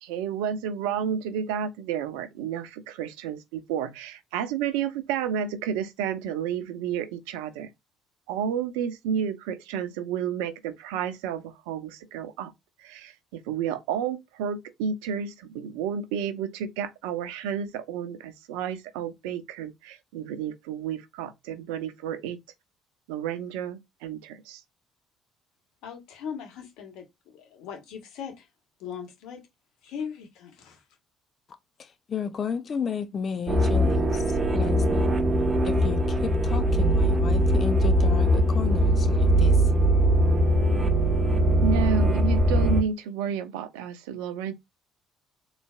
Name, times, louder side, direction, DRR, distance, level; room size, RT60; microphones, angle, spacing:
voice 1, 0.0-7.7 8.3-12.5 12.8-22.4 23.1-24.6 41.6-44.5, right 8 dB, 75° right, 0.6 m, -31 dB
voice 2, 25.8-28.5 28.8-29.4 29.8-30.8, left 7 dB, 70° left, 1.6 m, -39 dB
voice 3, 31.8-35.2 35.6-39.7, left 6 dB, 45° left, 0.6 m, -33 dB
sound 1, 33.5-42.8, equal, 30° right, 1.0 m, -21 dB
4.1 x 3.1 x 2.3 m
hypercardioid pair, 60°, 0 cm